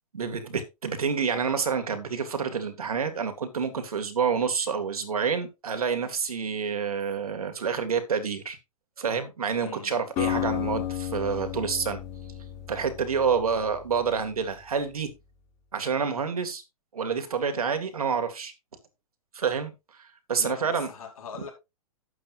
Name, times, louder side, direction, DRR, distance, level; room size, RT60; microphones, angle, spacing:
voice 1, 0.1-8.6 9.0-12.0 12.7-15.1 15.7-16.6 16.9-18.5 19.3-20.9, right 6 dB, 80° right, 2.3 m, -28 dB
voice 2, 9.6-9.9 20.4-21.5, left 6 dB, 70° left, 4.7 m, -41 dB
Acoustic guitar, 10.2-14.3, left 12 dB, 40° left, 4.1 m, -33 dB
12.0 x 8.6 x 2.6 m
hypercardioid pair, 110°, 18 cm